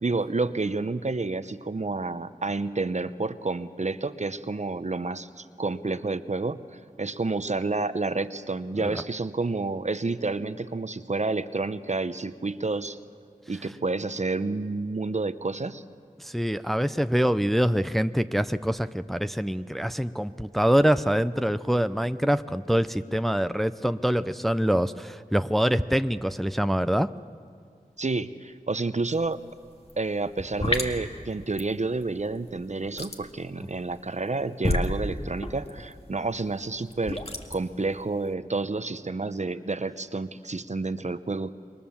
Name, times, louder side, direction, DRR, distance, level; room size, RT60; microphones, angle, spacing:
voice 1, 0.0-13.0 13.5-15.8 28.0-29.4 30.0-37.2 37.5-41.5, right 3 dB, 55° right, 12 dB, 0.8 m, -29 dB
voice 2, 16.2-27.1, equal, ahead, 11 dB, 0.6 m, -25 dB
sound 1, 29.1-29.3 29.6-38.3, left 1 dB, 45° left, 2.0 m, -32 dB
27.5 x 23.5 x 7.2 m, 2.1 s
wide cardioid pair, 45°, 15 cm